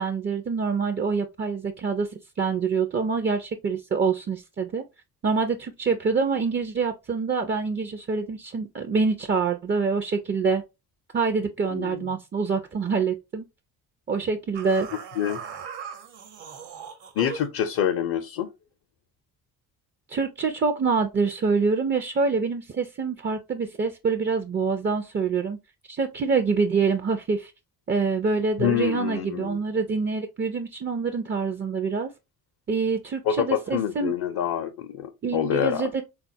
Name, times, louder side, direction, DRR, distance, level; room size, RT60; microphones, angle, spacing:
voice 1, 0.0-2.1 2.4-4.8 5.2-10.6 11.1-13.5 14.1-14.9 20.1-25.6 25.9-27.5 27.9-32.1 32.7-34.1 35.2-36.0, right 5 dB, 25° right, 0.5 m, -26 dB
voice 2, 11.7-12.1 15.2-15.4 17.2-18.5 28.6-29.6 33.2-35.9, left 10 dB, 55° left, 0.6 m, -26 dB
sound 1, 14.5-17.6, right 7 dB, 60° right, 1.0 m, -39 dB
3.7 x 2.4 x 2.6 m
hypercardioid pair, 50°, 47 cm